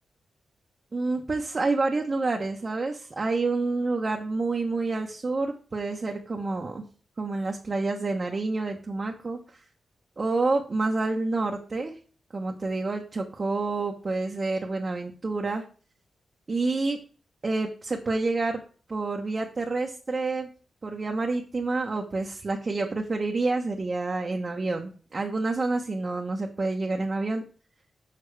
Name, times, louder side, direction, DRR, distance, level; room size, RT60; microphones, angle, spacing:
voice 1, 0.9-6.8 7.2-9.4 10.2-11.9 12.3-15.6 16.5-17.0 17.4-18.6 18.9-20.5 20.8-27.4, right 3 dB, 45° right, 1 dB, 0.9 m, -28 dB
6.7 x 5.8 x 3.3 m, 0.39 s
cardioid pair, 60°, 0 cm